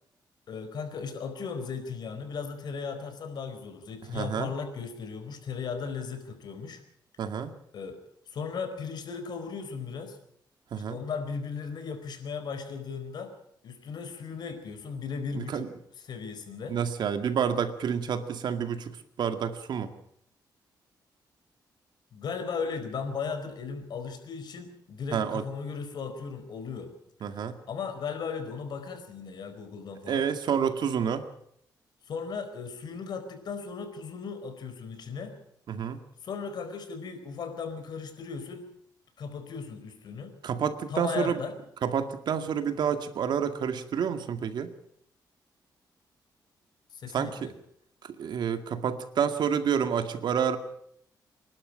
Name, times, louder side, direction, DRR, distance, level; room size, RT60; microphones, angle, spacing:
voice 1, 0.5-6.8 7.7-8.0 8.3-10.2 10.8-13.3 13.6-15.7 16.0-16.8 22.1-26.9 27.7-30.3 32.1-35.4 36.2-38.7 39.2-40.4 40.9-41.5 46.9-47.5, left 5 dB, 70° left, 7 dB, 4.5 m, -36 dB
voice 2, 4.1-4.5 7.2-7.5 10.7-11.0 15.4-15.7 16.7-19.9 25.1-25.4 27.2-27.6 30.1-31.2 35.7-36.0 40.4-41.4 41.8-44.7 47.1-47.5 48.0-50.6, right 7 dB, 70° right, 8 dB, 2.1 m, -29 dB
26.5 x 12.0 x 8.8 m, 0.71 s
cardioid pair, 95°, 8 cm